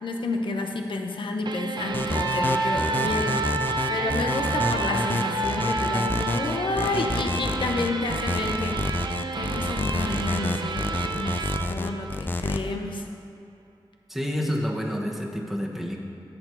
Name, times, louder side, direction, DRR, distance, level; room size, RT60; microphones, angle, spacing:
voice 1, 0.0-3.5 3.9-8.8 9.3-13.0, left 3 dB, 80° left, 3 dB, 0.9 m, -30 dB
sound 1, 1.5-12.7, right 5 dB, 65° right, 0.5 m, -32 dB
sound 2, 1.9-12.6, left 2 dB, 25° left, 0.6 m, -28 dB
Wind instrument woodwind instrument, 2.1-6.4, right 2 dB, 50° right, 1.1 m, -28 dB
voice 2, 14.1-16.0, equal, ahead, -2 dB, 1.3 m, -28 dB
10.5 x 7.1 x 4.7 m, 2.5 s
cardioid pair, 45°, 8 cm